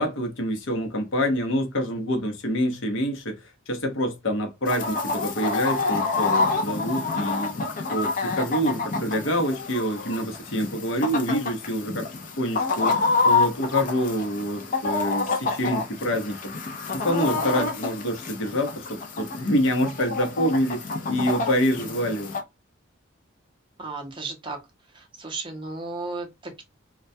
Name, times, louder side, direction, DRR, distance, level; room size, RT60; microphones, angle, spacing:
voice 1, 0.0-3.4 3.7-7.5 7.9-12.1 12.4-16.5 16.9-22.3, equal, 70° left, 0.7 m, -26 dB
Chicken rooster, 4.7-22.4, left 4 dB, 40° left, 0.5 m, -28 dB
voice 2, 23.8-24.6 24.9-26.6, right 3 dB, 25° right, 0.6 m, -34 dB
2.2 x 2.1 x 2.5 m
head